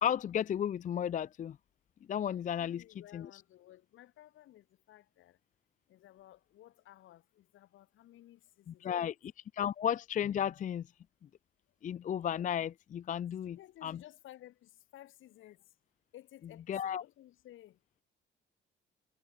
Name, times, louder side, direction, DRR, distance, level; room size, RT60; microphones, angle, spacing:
voice 1, 0.0-1.6 2.1-2.8 3.1-3.4 8.7-9.1 9.5-10.8 11.8-14.0 16.7-17.0, left 9 dB, 40° left, 0.4 m, -34 dB
voice 2, 2.5-5.4 5.9-9.1 13.5-15.7 16.1-17.8, left 14 dB, 80° left, 3.9 m, -56 dB
cardioid pair, 90°, 20 cm